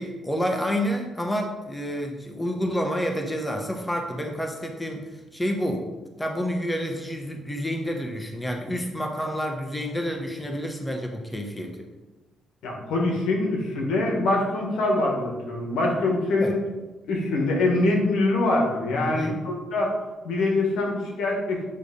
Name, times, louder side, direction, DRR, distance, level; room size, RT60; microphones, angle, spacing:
voice 1, 0.0-5.8 6.2-11.8 16.4-16.5 18.9-19.4, equal, 10° left, 2 dB, 1.1 m, -29 dB
voice 2, 12.6-16.6 17.1-19.9 20.2-21.7, left 2 dB, 85° left, 0 dB, 1.7 m, -24 dB
8.7 x 3.4 x 5.3 m, 1.1 s
cardioid pair, 90°, 0 cm